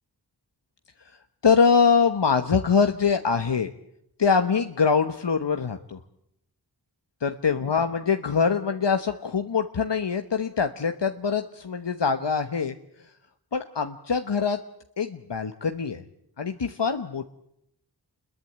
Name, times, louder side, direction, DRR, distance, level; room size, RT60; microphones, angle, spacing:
voice 1, 1.4-3.7 4.2-6.0 7.2-12.7 13.5-14.6 15.0-16.0 16.4-17.3, left 5 dB, 85° left, 7 dB, 1.2 m, -23 dB
28.5 x 22.0 x 8.7 m, 0.76 s
wide cardioid pair, 50°, 41 cm